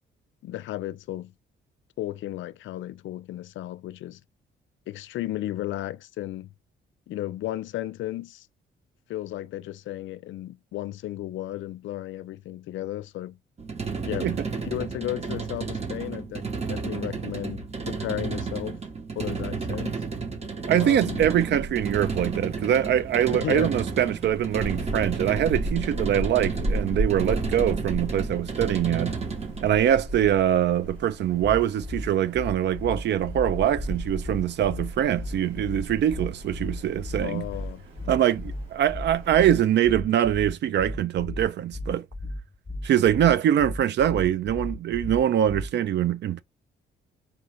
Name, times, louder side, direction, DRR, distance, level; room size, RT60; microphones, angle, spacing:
voice 1, 0.4-1.3 2.0-4.2 4.9-6.5 7.1-8.5 9.1-13.4 14.0-14.3 14.6-18.8 19.2-20.0 20.8-21.3 23.3-23.7 37.2-37.8, left 14 dB, 75° left, 0.5 m, -34 dB
sound 1, 13.6-29.8, right 5 dB, 30° right, 1.1 m, -32 dB
voice 2, 20.7-29.2 29.6-37.4 38.1-42.0 42.8-46.4, right 10 dB, 60° right, 0.5 m, -23 dB
Wind, 20.9-39.5, right 1 dB, 80° right, 2.1 m, -36 dB
sound 2, 31.4-45.9, left 1 dB, 10° left, 0.5 m, -35 dB
4.6 x 2.5 x 3.2 m
cardioid pair, 90°, 20 cm